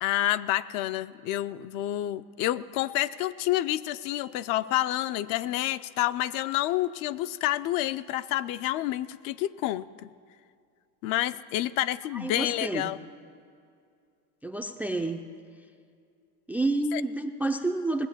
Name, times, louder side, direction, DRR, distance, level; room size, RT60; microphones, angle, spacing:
voice 1, 0.0-9.8 11.0-13.0 16.9-17.0, left 14 dB, 55° left, 14 dB, 0.5 m, -29 dB
voice 2, 12.1-12.9 14.4-15.2 16.5-18.1, right 2 dB, 5° right, 5 dB, 0.3 m, -29 dB
19.0 x 7.8 x 7.3 m, 2.3 s
supercardioid pair, 125°, 41 cm